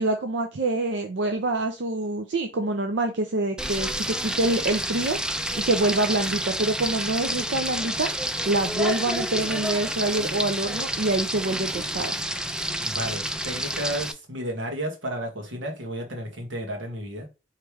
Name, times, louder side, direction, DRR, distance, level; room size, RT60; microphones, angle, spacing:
voice 1, 0.0-5.2 5.5-8.1 8.5-12.2, right 2 dB, 70° right, 4 dB, 0.6 m, -26 dB
Frying (food), 3.6-14.1, right 1 dB, 5° right, 0.3 m, -29 dB
voice 2, 12.8-17.3, right 1 dB, 90° right, 2 dB, 1.5 m, -32 dB
4.6 x 3.3 x 3.3 m, 0.29 s
head